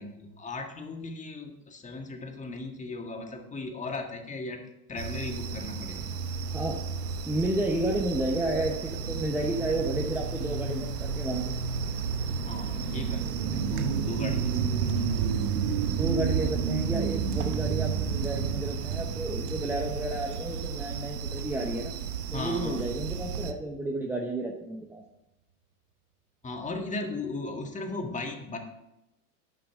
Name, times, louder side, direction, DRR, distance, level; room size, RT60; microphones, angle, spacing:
voice 1, 0.0-4.6 4.9-6.1 12.4-15.0 22.3-22.9 26.4-28.6, left 3 dB, 15° left, 3 dB, 1.7 m, -37 dB
sound 1, 5.0-23.5, right 6 dB, 90° right, 1.1 m, -33 dB
voice 2, 7.3-11.5 14.4-14.6 15.9-21.9 22.3-25.0, right 2 dB, 5° right, 1 dB, 0.9 m, -31 dB
sound 2, 12.3-21.4 21.9-22.0, right 7 dB, 60° right, 1.1 m, -31 dB
11.0 x 9.0 x 3.7 m, 0.91 s
hypercardioid pair, 110°, 45 cm